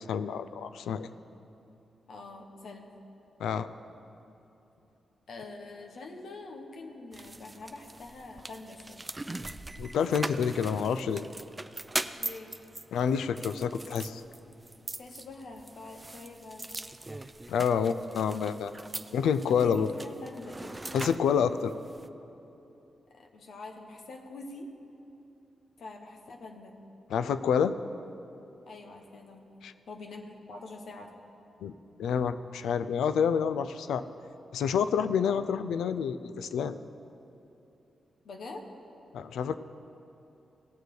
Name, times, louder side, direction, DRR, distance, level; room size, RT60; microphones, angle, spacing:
voice 1, 0.1-1.1 3.4-3.7 9.8-11.2 12.9-14.2 17.5-18.7 19.1-19.9 20.9-21.7 27.1-27.7 29.6-29.7 31.6-31.7 32.0-34.0 34.5-36.8 39.1-39.6, left 7 dB, 90° left, 12 dB, 0.4 m, -28 dB
voice 2, 2.1-2.9 5.3-9.0 12.2-12.5 15.0-16.7 19.5-20.8 23.1-24.7 25.8-26.7 28.7-29.4 29.9-31.1 38.2-38.6, left 2 dB, 75° left, 2 dB, 1.2 m, -45 dB
sound 1, 7.1-22.1, right 2 dB, 25° right, 0.5 m, -41 dB
17.5 x 6.8 x 4.8 m, 3.0 s
cardioid pair, 55°, 0 cm